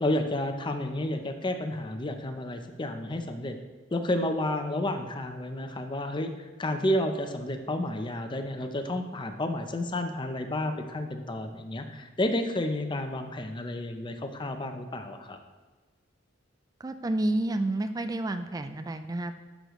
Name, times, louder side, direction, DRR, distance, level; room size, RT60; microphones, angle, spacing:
voice 1, 0.0-3.5 3.9-15.4, left 1 dB, 25° left, 7 dB, 0.6 m, -31 dB
voice 2, 16.8-19.4, right 1 dB, 20° right, 9 dB, 0.3 m, -30 dB
11.5 x 6.3 x 3.1 m, 1.3 s
head